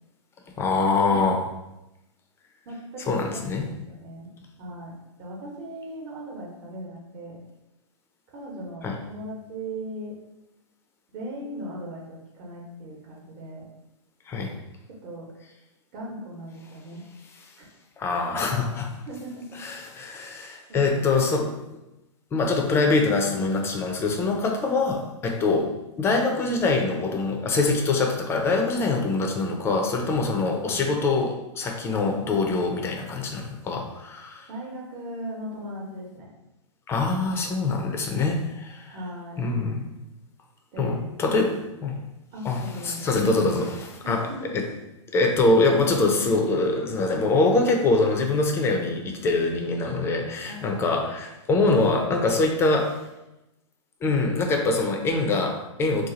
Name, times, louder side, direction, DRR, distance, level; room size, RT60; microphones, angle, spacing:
voice 1, 0.6-1.4 3.1-3.6 8.8-8.9 14.3-14.5 18.0-18.9 19.6-21.6 22.3-34.5 36.9-38.9 39.4-39.8 40.8-42.0 42.4-44.3 44.5-44.6 45.1-53.0 54.0-56.1, left 3 dB, 15° left, 3 dB, 0.4 m, -24 dB
voice 2, 2.7-4.3 4.6-7.4 8.3-10.2 11.1-13.6 15.0-15.3 15.9-17.0 19.1-19.6 20.7-21.5 34.5-36.3 38.9-39.5 40.7-41.0 42.3-43.2 44.0-44.5 50.4-50.9, right 1 dB, 45° right, -3 dB, 1.0 m, -38 dB
2.8 x 2.4 x 3.8 m, 0.94 s
hypercardioid pair, 125°, 16 cm